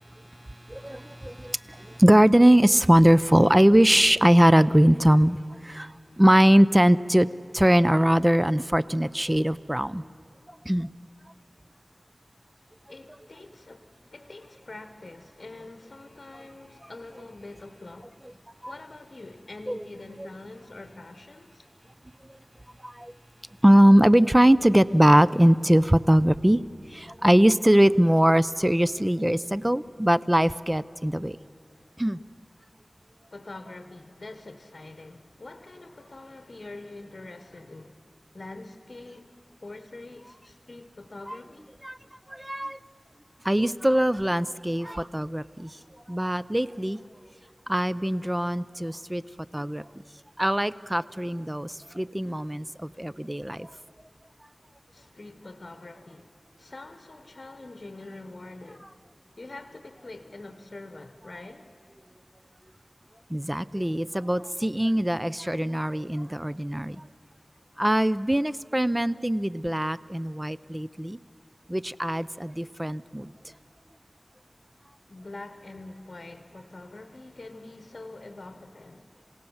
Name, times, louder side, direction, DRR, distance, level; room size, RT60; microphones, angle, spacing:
voice 1, 0.7-7.3 7.5-10.0 10.6-10.9 18.6-18.7 19.7-19.8 22.8-23.1 23.6-26.6 26.9-31.4 32.0-32.2 41.8-42.0 42.3-42.8 43.4-45.7 46.1-47.0 47.7-49.2 49.5-49.8 50.4-53.7 63.3-67.0 67.8-71.2 71.7-73.3, equal, 15° right, 0.6 m, -21 dB
voice 2, 12.9-18.4 18.6-21.7 33.3-38.0 38.3-39.3 39.6-41.7 54.9-56.3 56.6-58.9 59.4-61.7 75.1-79.1, left 2 dB, 60° left, 1.2 m, -44 dB
27.5 x 17.0 x 7.2 m
wide cardioid pair, 40°, 0 cm